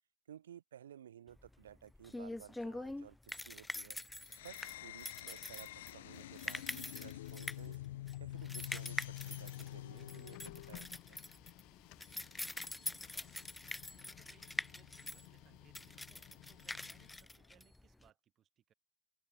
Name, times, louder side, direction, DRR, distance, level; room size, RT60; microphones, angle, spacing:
voice 1, 0.3-4.0 4.4-7.8 8.2-11.3, right 10 dB, 80° right, 2.4 m, -56 dB
sound 1, 1.4-18.1, left 2 dB, 5° left, 1.2 m, -45 dB
sound 2, 4.2-10.9, left 15 dB, 70° left, 0.8 m, -47 dB
Printer, 7.8-17.6, left 22 dB, 55° left, 1.6 m, -58 dB
voice 2, 12.4-18.7, right 10 dB, 35° right, 6.4 m, -70 dB
open air
hypercardioid pair, 90°, 0 cm